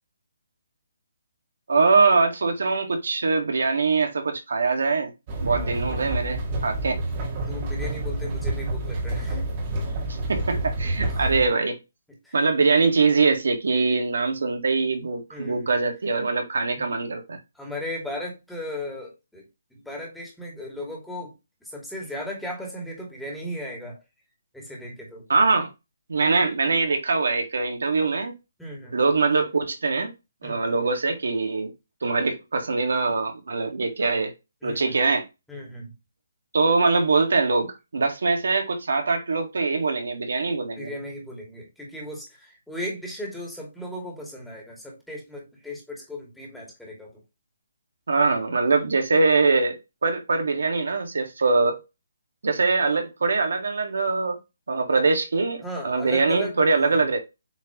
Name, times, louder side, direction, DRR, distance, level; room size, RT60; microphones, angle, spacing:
voice 1, 1.7-5.1 5.4-7.0 10.3-11.8 12.3-17.4 25.3-25.7 26.1-28.3 28.9-30.1 30.4-31.7 32.0-34.3 34.6-35.3 36.5-40.9 48.1-51.8 52.4-54.4 54.7-57.2, right 4 dB, 80° right, 1.8 m, -23 dB
sound 1, 5.3-11.5, right 1 dB, 30° right, 1.9 m, -28 dB
voice 2, 7.5-9.4 9.9-10.1 11.1-11.4 12.2-12.3 15.3-15.7 17.5-19.4 19.7-21.3 21.6-24.0 24.5-25.2 28.6-29.0 30.4-30.7 34.6-35.0 35.5-35.9 40.8-47.1 55.6-57.1, left 1 dB, ahead, 2.4 m, -36 dB
8.0 x 3.9 x 3.0 m
hypercardioid pair, 160°, 0 cm